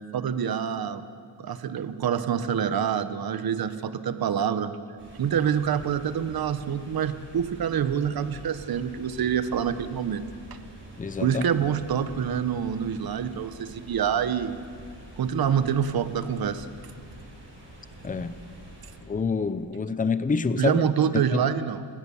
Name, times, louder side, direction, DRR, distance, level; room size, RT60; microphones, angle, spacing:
voice 1, 0.1-1.0 1.4-4.7 5.2-10.2 11.2-14.5 15.2-16.7 20.6-21.8, right 8 dB, 55° right, 11 dB, 1.2 m, -26 dB
sound 1, 5.0-19.0, right 1 dB, 25° right, 7.8 m, -46 dB
voice 2, 11.0-11.4 18.0-18.4 19.1-20.8 21.3-21.4, left 4 dB, 20° left, 13 dB, 0.7 m, -27 dB
30.0 x 17.0 x 7.2 m, 2.2 s
wide cardioid pair, 140°, 43 cm